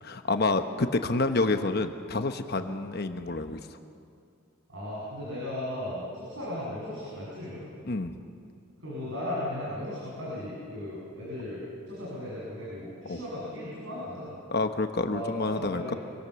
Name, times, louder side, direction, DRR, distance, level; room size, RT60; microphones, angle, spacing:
voice 1, 0.0-3.6 7.9-8.2 13.0-13.2 14.5-15.9, left 3 dB, 50° left, 7 dB, 1.0 m, -28 dB
voice 2, 4.7-7.7 8.8-14.3 15.1-16.0, left 1 dB, 65° right, -7 dB, 7.4 m, -36 dB
26.0 x 23.5 x 7.0 m, 2.4 s
head